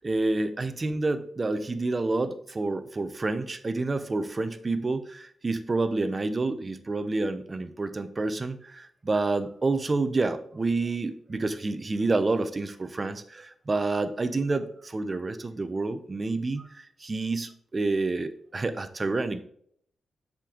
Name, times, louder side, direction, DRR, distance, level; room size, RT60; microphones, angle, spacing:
voice 1, 0.0-19.4, right 3 dB, 35° right, 10 dB, 0.8 m, -28 dB
7.4 x 5.3 x 3.7 m, 0.64 s
cardioid pair, 80°, 0 cm